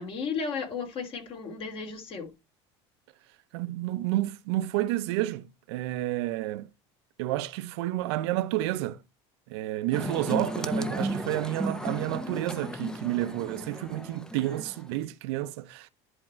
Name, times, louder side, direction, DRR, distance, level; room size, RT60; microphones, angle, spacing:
voice 1, 0.0-2.3, left 5 dB, 45° left, 3.1 m, -34 dB
voice 2, 3.5-6.7 7.2-9.0 9.5-15.9, right 15 dB, 85° right, 0.7 m, -30 dB
sound 1, 9.9-15.0, equal, 5° left, 0.7 m, -34 dB
11.0 x 3.6 x 4.4 m
cardioid pair, 130°, 13 cm